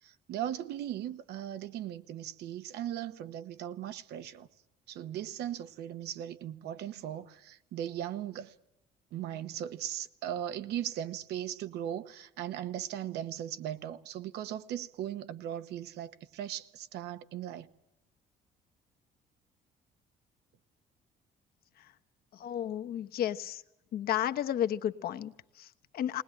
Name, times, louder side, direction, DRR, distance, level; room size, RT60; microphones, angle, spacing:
voice 1, 0.0-4.5 4.9-8.5 9.1-17.7, right 11 dB, 80° right, 1.1 m, -38 dB
voice 2, 22.3-23.6 23.9-26.2, left 10 dB, 65° left, 1.1 m, -33 dB
20.0 x 19.5 x 9.9 m
cardioid pair, 110°, 17 cm